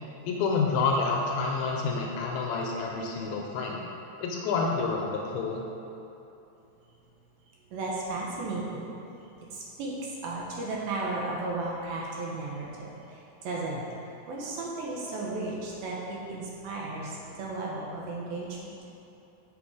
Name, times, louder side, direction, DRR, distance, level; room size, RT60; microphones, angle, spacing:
voice 1, 0.2-3.8 4.2-5.6, left 4 dB, 80° left, 0 dB, 2.3 m, -28 dB
voice 2, 7.7-9.1 9.5-18.8, right 2 dB, 75° right, -3 dB, 2.6 m, -35 dB
7.6 x 6.4 x 4.8 m, 2.9 s
omnidirectional pair, 4.7 m